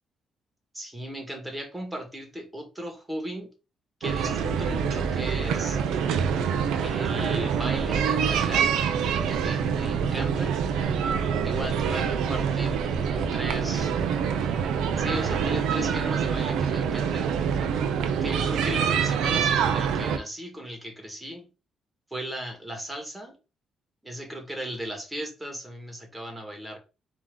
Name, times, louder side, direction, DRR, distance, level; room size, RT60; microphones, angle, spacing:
voice 1, 0.7-3.5 4.0-5.8 6.8-8.7 9.1-10.6 11.4-12.0 12.3-12.8 13.1-13.9 15.0-17.3 18.2-21.5 22.1-23.4 24.0-26.8, right 1 dB, 5° right, 2 dB, 1.9 m, -36 dB
sound 1, 4.0-20.2, right 7 dB, 85° right, 0.7 m, -26 dB
4.3 x 3.0 x 3.8 m, 0.31 s
cardioid pair, 90°, 0 cm